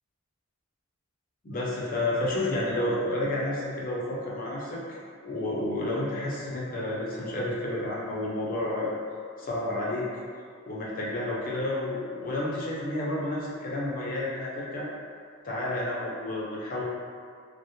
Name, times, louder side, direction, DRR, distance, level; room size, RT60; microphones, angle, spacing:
voice 1, 1.4-4.8 5.2-9.0 9.4-10.1 10.7-14.9 15.4-16.8, left 1 dB, 40° left, -5 dB, 0.4 m, -30 dB
2.1 x 2.0 x 2.8 m, 2.2 s
head